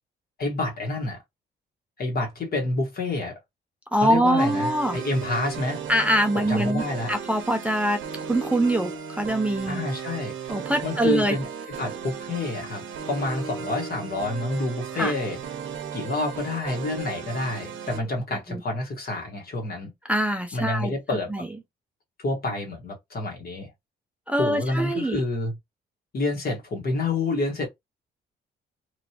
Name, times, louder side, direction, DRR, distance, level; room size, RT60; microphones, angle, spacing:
voice 1, 0.4-1.2 2.0-3.4 4.0-5.8 6.3-7.1 9.7-10.3 10.8-11.5 11.8-15.4 15.9-19.9 20.5-21.5 22.2-23.7 24.4-25.5 26.1-27.7, left 2 dB, 50° left, 1.4 m, -28 dB
voice 2, 3.9-5.0 5.9-6.8 7.1-8.0 8.3-9.8 10.5-11.4 15.0-15.1 18.3-18.6 20.1-20.9 21.3-21.5 24.3-25.2, right 1 dB, 5° right, 0.4 m, -23 dB
sound 1, 4.4-18.0, right 7 dB, 80° right, 0.7 m, -36 dB
3.1 x 2.6 x 2.8 m
cardioid pair, 90°, 20 cm